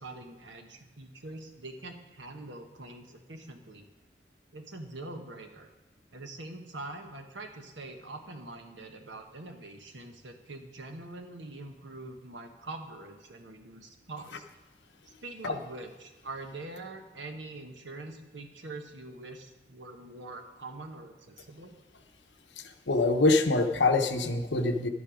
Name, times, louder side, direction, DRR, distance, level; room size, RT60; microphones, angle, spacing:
voice 1, 0.0-3.9 4.5-5.7 6.1-14.5 15.0-21.7, right 2 dB, 90° right, 4 dB, 1.4 m, -44 dB
voice 2, 22.6-24.9, left 3 dB, 80° left, 6 dB, 1.0 m, -25 dB
11.5 x 9.9 x 5.1 m, 1.1 s
head